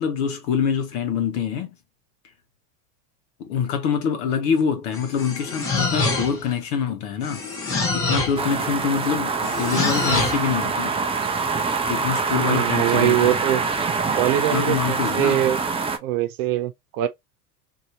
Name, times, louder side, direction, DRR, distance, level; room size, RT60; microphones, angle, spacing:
voice 1, 0.0-1.7 3.4-7.4 7.9-11.0 11.9-13.4 14.5-15.5, left 7 dB, 65° left, 1.3 m, -25 dB
sound 1, 4.9-6.5 7.2-8.5 9.4-10.5, left 3 dB, 30° left, 1.4 m, -25 dB
sound 2, 8.4-16.0, right 4 dB, 10° right, 0.5 m, -25 dB
voice 2, 12.3-13.6 14.1-15.6 16.0-17.1, right 13 dB, 65° right, 0.9 m, -22 dB
3.0 x 2.7 x 2.8 m
hypercardioid pair, 95°, 48 cm